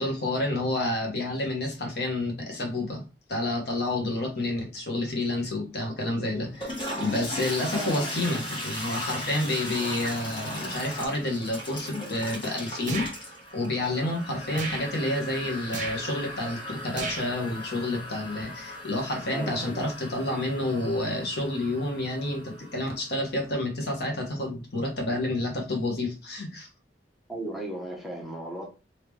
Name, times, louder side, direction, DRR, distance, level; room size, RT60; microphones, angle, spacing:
voice 1, 0.0-3.0 3.3-13.2 13.5-26.7, left 1 dB, 65° left, 1.1 m, -29 dB
Toilet flush, 6.4-23.2, left 1 dB, 30° left, 1.2 m, -38 dB
voice 2, 7.7-8.3 19.3-19.8 27.3-28.7, right 1 dB, ahead, 0.8 m, -36 dB
sound 1, 12.9-13.2 14.5-14.9 15.7-16.0 16.9-17.3, right 3 dB, 45° right, 0.8 m, -34 dB
3.6 x 2.8 x 3.0 m
head